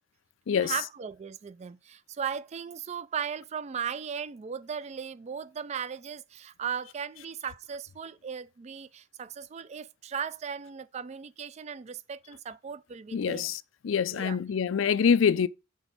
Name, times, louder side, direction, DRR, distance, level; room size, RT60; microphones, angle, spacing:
voice 1, 0.5-13.5 14.1-14.4 14.8-14.9, right 7 dB, 35° right, 0.3 m, -37 dB
voice 2, 13.1-13.6 13.8-15.5, left 7 dB, 85° left, 0.4 m, -25 dB
6.2 x 3.9 x 5.3 m
head